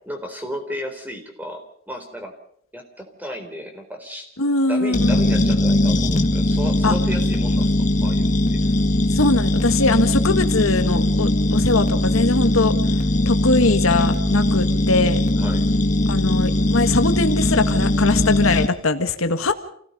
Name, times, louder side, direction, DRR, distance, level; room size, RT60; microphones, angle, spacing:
voice 1, 0.0-2.4 2.7-4.3 4.7-7.7 8.0-8.6 15.4-15.6, equal, 10° right, 4 dB, 4.0 m, -33 dB
voice 2, 4.4-5.5 6.8-6.9 9.1-12.7 13.2-15.2 16.1-19.5, left 3 dB, 85° left, 8 dB, 1.7 m, -21 dB
sound 1, 4.9-18.7, left 1 dB, 35° left, 1.5 m, -20 dB
28.5 x 17.0 x 5.4 m, 0.66 s
head